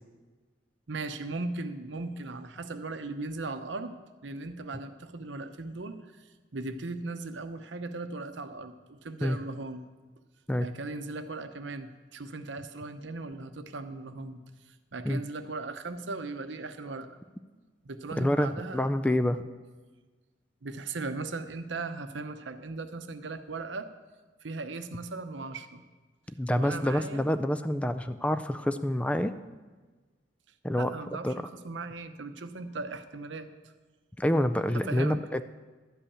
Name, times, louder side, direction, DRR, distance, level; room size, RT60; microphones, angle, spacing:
voice 1, 0.9-4.0 4.2-9.9 10.6-17.2 17.8-19.3 20.6-23.9 24.4-25.8 26.5-27.2 30.7-33.7 34.7-35.2, right 3 dB, 80° right, 9 dB, 0.8 m, -38 dB
voice 2, 18.2-19.4 26.4-29.3 30.6-31.4 34.2-35.4, left 1 dB, 5° left, 11 dB, 0.3 m, -27 dB
12.0 x 5.5 x 8.6 m, 1.3 s
head